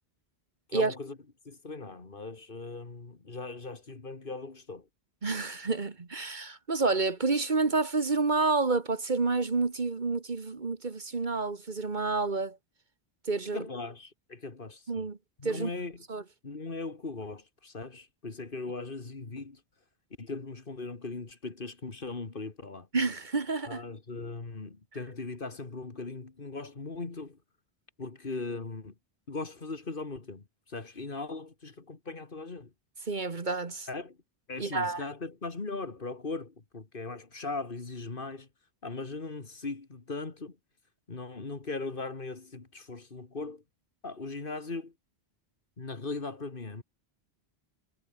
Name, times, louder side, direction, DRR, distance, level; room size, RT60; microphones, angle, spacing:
voice 1, 0.7-1.2 1.5-4.9 13.5-15.1 15.4-16.0 16.4-19.6 20.2-22.9 23.7-27.4 28.0-28.9 29.3-32.7 33.9-34.2 34.5-38.5 38.8-40.6 41.1-43.6 44.0-44.9 45.8-46.8, left 3 dB, 55° left, 2.2 m, -39 dB
voice 2, 5.2-12.6 13.3-13.6 14.9-15.2 15.4-15.7 16.1-16.2 22.9-23.8 33.1-33.9 34.6-35.0, right 3 dB, 45° right, 1.6 m, -29 dB
omnidirectional pair, 1.1 m